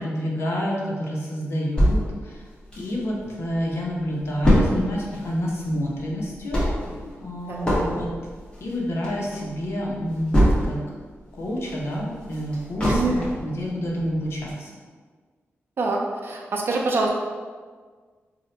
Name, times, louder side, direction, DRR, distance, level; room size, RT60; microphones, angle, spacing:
voice 1, 0.0-2.4 2.8-6.7 7.0-8.1 8.6-10.8 11.3-14.7, equal, 65° left, -3 dB, 0.7 m, -29 dB
sound 1, 1.8-3.3 3.7-3.8 4.0-11.0 11.4-13.5 14.0-14.1 14.5-14.6, equal, 20° left, 1.0 m, -23 dB
voice 2, 12.9-13.3 15.8-17.1, right 3 dB, 50° right, -1 dB, 0.4 m, -25 dB
2.8 x 2.1 x 3.8 m, 1.5 s
wide cardioid pair, 115°, 5 cm